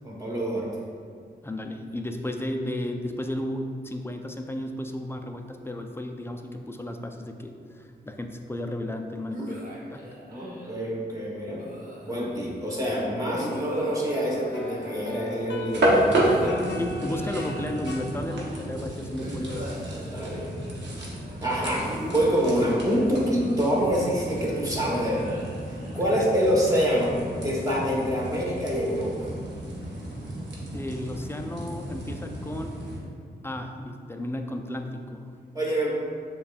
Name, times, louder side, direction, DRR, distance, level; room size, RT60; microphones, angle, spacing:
voice 1, 0.0-0.7 10.3-11.7 12.0-16.6 20.1-20.6 21.4-25.4 25.7-27.2 27.4-29.3 35.5-35.9, equal, 20° right, -5 dB, 1.2 m, -26 dB
voice 2, 1.4-9.6 9.9-10.0 16.8-19.6 30.7-32.8 33.4-35.3, left 1 dB, 15° left, 4 dB, 0.4 m, -33 dB
sound 1, 9.3-10.8 11.6-12.5 13.4-15.6 16.2-18.1 19.2-20.9 21.8-23.4 24.3-26.3, equal, 50° right, 1.0 m, -39 dB
sound 2, 11.5-11.6 12.2-18.0, left 3 dB, 75° left, 0.6 m, -41 dB
sound 3, 15.6-33.0, right 1 dB, 80° right, 0.8 m, -31 dB
6.8 x 2.3 x 2.4 m, 2.1 s
cardioid pair, 55°, 18 cm